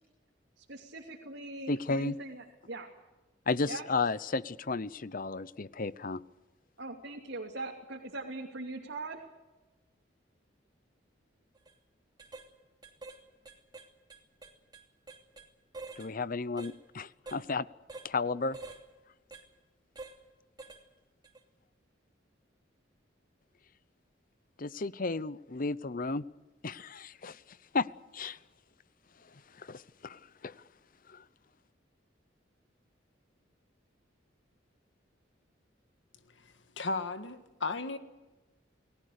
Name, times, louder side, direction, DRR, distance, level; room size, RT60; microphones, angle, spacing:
voice 1, 0.6-2.9 3.7-3.8 6.8-9.3, right 2 dB, 75° right, 0 dB, 3.0 m, -41 dB
voice 2, 1.7-2.2 3.5-6.2 16.0-17.7 18.0-18.6 24.6-26.2 26.6-27.4 27.7-27.9 28.1-28.4 29.6-30.5 31.1-31.2, left 3 dB, 45° left, 17 dB, 0.8 m, -33 dB
sound 1, 11.5-11.7 12.2-12.5 12.8-13.2 13.4-15.5 15.7-16.1 16.6-16.7 17.3-17.4 17.9-18.1 18.5-18.8 19.3-19.4 20.0-20.2 20.6-20.8 21.2-21.4, right 3 dB, 20° right, 2.8 m, -47 dB
voice 3, 36.4-38.0, left 3 dB, 70° left, 9 dB, 1.8 m, -35 dB
29.5 x 19.5 x 6.7 m, 1.1 s
head